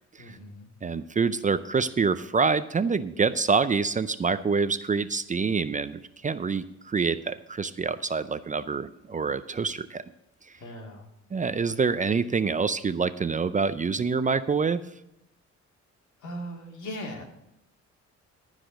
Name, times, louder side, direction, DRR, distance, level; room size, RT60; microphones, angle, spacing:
voice 1, 0.2-0.7 10.5-11.1 16.2-17.2, equal, 75° left, 1 dB, 2.7 m, -39 dB
voice 2, 0.8-10.0 11.3-14.8, right 5 dB, 25° right, 13 dB, 0.5 m, -26 dB
14.0 x 5.0 x 6.3 m, 0.84 s
cardioid pair, 90°, 30 cm